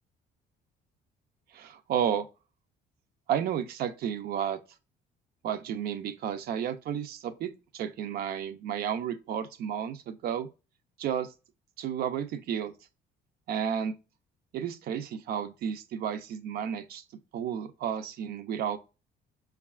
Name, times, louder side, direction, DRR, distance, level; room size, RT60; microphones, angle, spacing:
voice 1, 1.5-2.3 3.3-4.6 5.4-10.5 11.0-11.3 11.8-12.7 13.5-13.9 14.5-17.0 17.3-18.8, right 8 dB, 65° right, 0.5 m, -32 dB
5.4 x 2.3 x 2.3 m
cardioid pair, 110°, 17 cm